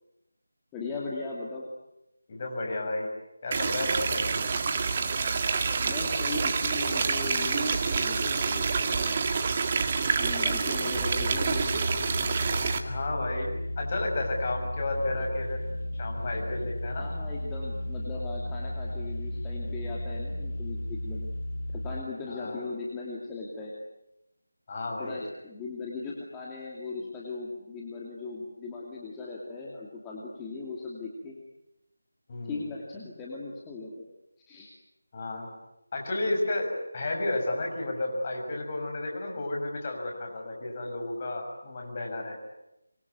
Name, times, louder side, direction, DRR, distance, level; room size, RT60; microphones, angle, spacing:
voice 1, 0.7-1.7 5.8-9.1 10.2-11.8 17.0-21.3 21.7-23.7 25.0-31.4 32.4-34.1 34.5-34.7, left 3 dB, 10° left, -4 dB, 2.6 m, -38 dB
voice 2, 2.3-3.1 3.4-4.4 12.8-15.6 16.0-17.0 22.3-22.6 24.7-25.2 32.3-32.7 35.1-35.5 35.9-42.3, left 2 dB, 30° left, 1 dB, 6.3 m, -32 dB
sound 1, 3.5-12.8, right 5 dB, 25° right, 2.1 m, -27 dB
sound 2, 10.9-22.0, left 1 dB, 50° left, 6.1 m, -34 dB
26.0 x 23.5 x 9.6 m, 0.89 s
figure-of-eight pair, 170°, 0 cm